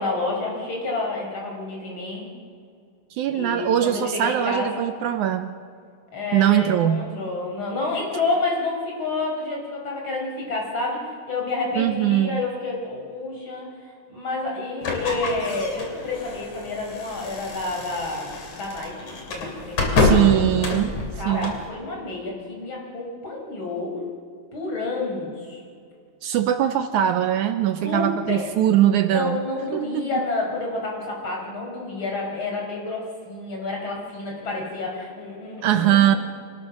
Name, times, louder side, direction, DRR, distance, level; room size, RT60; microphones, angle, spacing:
voice 1, 0.0-2.3 3.3-4.9 6.1-18.9 19.3-19.9 20.2-20.3 21.2-24.0 24.5-25.6 27.8-28.5 29.1-36.2, left 3 dB, 35° left, 0 dB, 5.3 m, -29 dB
voice 2, 3.1-5.6 6.3-7.2 11.8-12.4 20.0-21.0 21.3-21.6 26.2-29.4 29.7-30.1 35.6-36.2, right 11 dB, 75° right, 9 dB, 1.9 m, -21 dB
sound 1, 14.8-21.7, left 3 dB, 55° left, 4.0 m, -27 dB
26.0 x 18.5 x 6.3 m, 2.3 s
omnidirectional pair, 3.9 m